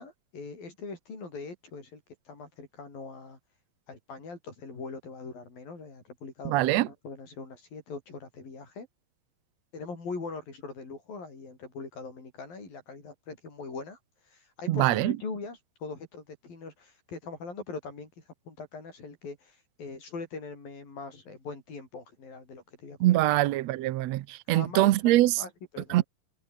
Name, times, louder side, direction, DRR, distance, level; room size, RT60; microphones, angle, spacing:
voice 1, 0.0-2.0 2.3-3.4 3.9-8.9 9.7-14.0 14.3-18.1 18.5-23.4 24.5-26.0, left 4 dB, 80° left, 9.2 m, -41 dB
voice 2, 6.4-6.9 14.7-15.1 23.0-25.4 25.9-26.0, right 16 dB, 80° right, 1.5 m, -23 dB
omnidirectional pair, 4.0 m